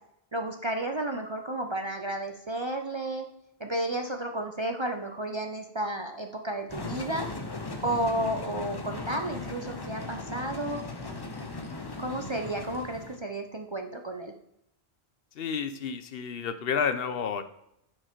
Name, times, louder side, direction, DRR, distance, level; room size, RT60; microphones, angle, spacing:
voice 1, 0.3-3.3 3.6-10.8 12.0-14.3, right 1 dB, 35° right, 4 dB, 0.5 m, -32 dB
sound 1, 6.7-13.2, left 2 dB, 25° left, 0.6 m, -38 dB
voice 2, 15.3-17.4, left 6 dB, 65° left, 10 dB, 0.8 m, -30 dB
8.6 x 4.7 x 4.5 m, 0.77 s
omnidirectional pair, 1.1 m